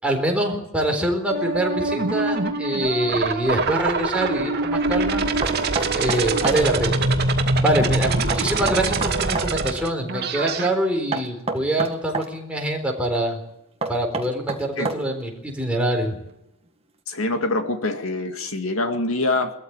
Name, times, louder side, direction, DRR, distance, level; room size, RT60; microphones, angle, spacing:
voice 1, 0.0-5.2 5.9-7.1 7.6-13.4 13.9-16.2, right 1 dB, 5° right, 1 dB, 4.2 m, -24 dB
sound 1, 1.3-10.7, right 3 dB, 50° right, 2.2 m, -24 dB
Knock, 5.4-6.6 8.3-9.5 11.1-12.3 13.8-15.2, right 3 dB, 30° right, 1.8 m, -28 dB
voice 2, 17.1-19.5, left 2 dB, 85° left, 7 dB, 2.2 m, -25 dB
21.0 x 14.0 x 8.9 m, 0.87 s
head